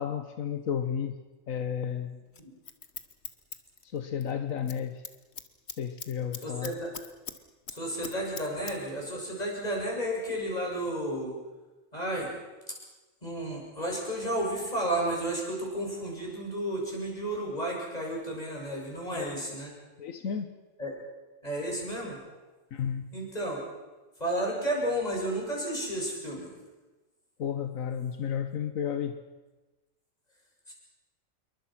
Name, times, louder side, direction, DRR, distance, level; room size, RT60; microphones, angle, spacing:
voice 1, 0.0-2.2 3.9-5.0 5.8-6.7 19.1-19.3 20.0-20.5 22.7-23.1 27.4-29.1, left 8 dB, 85° left, 8 dB, 1.5 m, -32 dB
Scissors, 2.3-4.3 4.6-4.8 5.1-7.4 7.7-8.8 9.0-9.1, left 6 dB, 55° left, 1.6 m, -41 dB
voice 2, 6.4-6.9 7.7-11.4 11.9-12.3 12.7-12.8 13.2-19.7 20.8-21.0 21.4-22.2 23.1-23.6 24.2-26.5 30.7-30.8, right 1 dB, 30° left, -2 dB, 7.3 m, -32 dB
27.5 x 23.0 x 6.0 m, 1.2 s
omnidirectional pair, 1.4 m